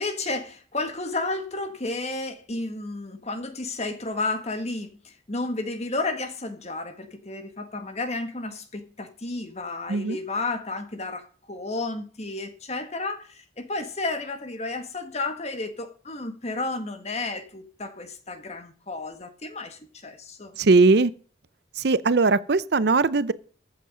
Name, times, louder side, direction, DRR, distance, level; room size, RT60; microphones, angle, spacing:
voice 1, 0.0-20.6, left 2 dB, 35° left, 1.6 m, -32 dB
voice 2, 20.6-21.1 21.8-23.3, right 3 dB, 60° right, 0.6 m, -19 dB
14.0 x 8.2 x 5.0 m
head